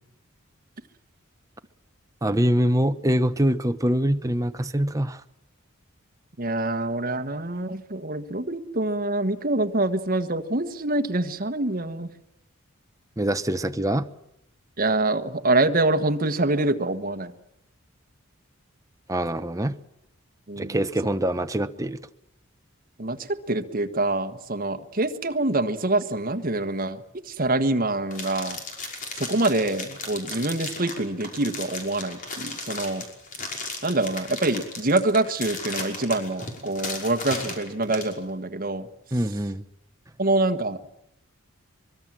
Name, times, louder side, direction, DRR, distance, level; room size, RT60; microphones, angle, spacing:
voice 1, 2.2-5.2 13.2-14.1 19.1-19.8 20.6-22.0 39.1-39.6, right 1 dB, 15° right, 0.9 m, -24 dB
voice 2, 6.4-12.1 14.8-17.3 20.5-20.7 23.0-28.6 29.2-33.0 33.8-38.9 40.2-40.9, right 2 dB, 40° right, 1.5 m, -25 dB
sound 1, 28.1-38.1, left 3 dB, 40° left, 5.5 m, -35 dB
24.0 x 23.0 x 7.5 m
head